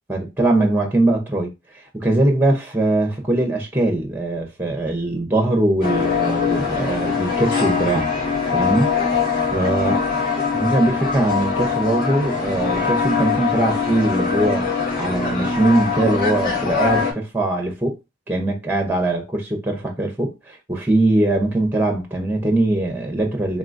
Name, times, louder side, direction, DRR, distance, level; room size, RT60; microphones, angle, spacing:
voice 1, 0.1-8.1 8.5-8.9 9.5-10.0 10.5-14.7 15.0-18.0 18.3-23.6, right 2 dB, 10° right, 0.7 m, -21 dB
sound 1, 5.8-17.1, left 5 dB, 40° left, 2.0 m, -22 dB
3.8 x 3.8 x 2.5 m
head